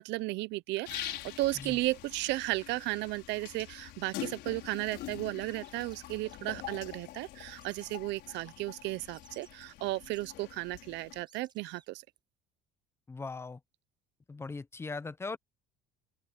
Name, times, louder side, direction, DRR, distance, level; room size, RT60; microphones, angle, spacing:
voice 1, 0.0-12.0, right 19 dB, 65° right, 0.6 m, -34 dB
sound 1, 0.9-11.2, left 15 dB, 60° left, 5.2 m, -45 dB
sound 2, 4.3-4.4 4.7-5.2 5.4-6.6 7.6-8.0 9.1-9.5 10.0-10.3 11.0-11.1 11.3-11.9, right 6 dB, 25° right, 5.0 m, -61 dB
voice 2, 13.1-13.6 14.3-15.4, left 3 dB, 15° left, 0.6 m, -39 dB
open air
cardioid pair, 165°, 20 cm